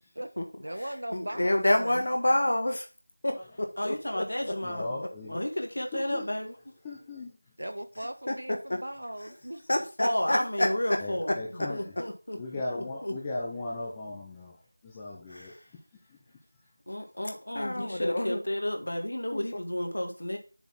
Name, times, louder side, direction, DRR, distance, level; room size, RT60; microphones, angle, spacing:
voice 1, 0.6-2.0 7.6-9.6 17.8-18.3, right 1 dB, 85° right, 1.2 m, -39 dB
voice 2, 1.1-2.9 3.2-5.1 8.3-8.4 9.7-11.0 15.3-15.6 17.5-18.4 19.3-19.4, left 1 dB, 40° left, 1.2 m, -28 dB
voice 3, 3.8-5.0 5.3-6.5 10.0-11.4 11.7-12.4 12.8-13.1 16.9-20.4, left 1 dB, 65° left, 1.8 m, -32 dB
voice 4, 4.6-5.4 5.9-6.2 6.8-7.5 11.0-11.9 12.4-16.2, left 2 dB, 5° left, 0.4 m, -38 dB
7.0 x 4.1 x 5.8 m
figure-of-eight pair, 180°, 0 cm